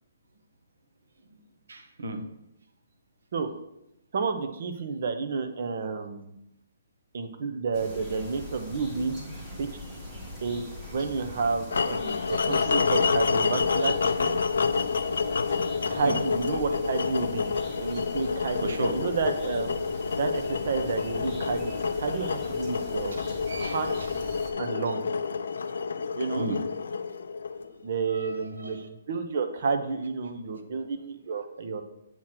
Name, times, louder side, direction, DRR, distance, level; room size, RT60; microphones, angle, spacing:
voice 1, 1.7-2.2 9.0-9.1 16.0-16.2 18.6-19.0 23.1-23.2 23.5-24.7 25.4-25.6 26.4-26.7 27.0-27.2 27.8-28.9 30.5-30.9, right 2 dB, 85° right, 6 dB, 1.1 m, -36 dB
voice 2, 4.1-6.3 7.1-9.2 9.6-9.7 10.4-10.6 10.9-14.3 15.9-17.5 17.8-19.7 20.2-23.2 23.6-24.1 24.6-25.1 26.1-26.5 27.8-31.8, right 4 dB, 45° right, 7 dB, 0.8 m, -30 dB
sound 1, 7.7-24.5, left 1 dB, 15° right, 1.4 m, -42 dB
sound 2, 11.7-27.8, left 5 dB, 80° left, 0.5 m, -28 dB
8.7 x 3.1 x 5.9 m, 0.83 s
hypercardioid pair, 175°, 0 cm